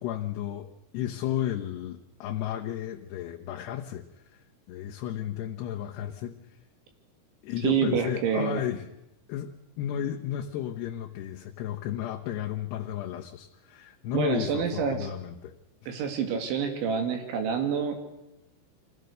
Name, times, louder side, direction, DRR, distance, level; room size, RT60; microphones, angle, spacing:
voice 1, 0.0-4.0 4.3-4.4 4.7-6.4 7.4-8.9 9.3-9.5 9.8-15.5 15.8-15.9, left 11 dB, 75° left, 2 dB, 2.9 m, -33 dB
voice 2, 7.6-8.6 14.1-15.1 15.9-18.0, right 7 dB, 80° right, 6 dB, 4.5 m, -27 dB
25.5 x 17.0 x 6.6 m, 0.93 s
omnidirectional pair, 5.3 m